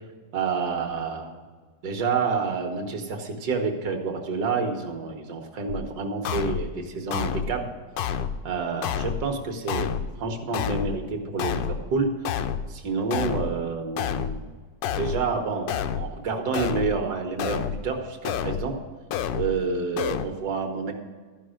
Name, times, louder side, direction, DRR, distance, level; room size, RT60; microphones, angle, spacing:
voice 1, 0.3-1.4 1.8-7.7 8.5-9.9 10.2-12.1 12.7-14.5 15.0-15.7 16.0-18.7 19.3-20.9, right 4 dB, 65° right, 4 dB, 1.8 m, -28 dB
sound 1, 5.7-5.8 6.2-6.7 7.1-7.5 8.0-8.4 8.8-9.2 9.7-10.1 10.5-11.0 11.4-11.8 12.2-12.7 13.1-13.5 14.0-14.4 14.8-15.2 15.7-16.1 16.5-17.0 17.4-17.8 18.2-18.7 19.1-19.5 20.0-20.3, left 8 dB, 90° left, 1.3 m, -28 dB
13.0 x 5.4 x 6.4 m, 1.5 s
omnidirectional pair, 1.9 m